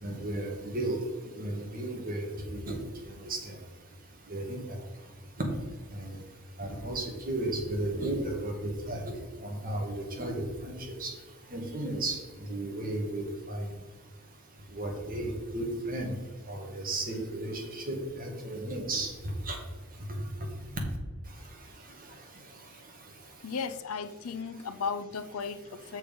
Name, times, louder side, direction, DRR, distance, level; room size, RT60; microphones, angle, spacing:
voice 1, 0.0-3.6 4.3-4.8 5.9-6.2 6.6-9.1 9.4-11.1 11.5-13.7 14.7-16.2 16.5-19.6 20.1-20.2 21.8-22.6, right 1 dB, 40° right, 1 dB, 1.8 m, -34 dB
voice 2, 23.4-26.0, left 5 dB, 80° left, 13 dB, 0.5 m, -35 dB
7.0 x 6.5 x 5.2 m, 1.3 s
head